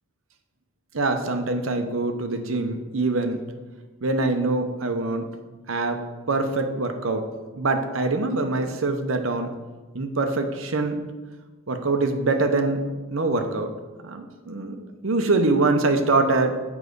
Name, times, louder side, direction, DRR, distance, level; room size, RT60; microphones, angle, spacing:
voice 1, 0.9-3.4 4.0-5.3 5.7-7.2 7.6-9.5 9.9-11.0 11.7-13.7 14.0-16.6, right 3 dB, 85° right, 6 dB, 0.9 m, -24 dB
7.3 x 5.0 x 6.7 m, 1.3 s
head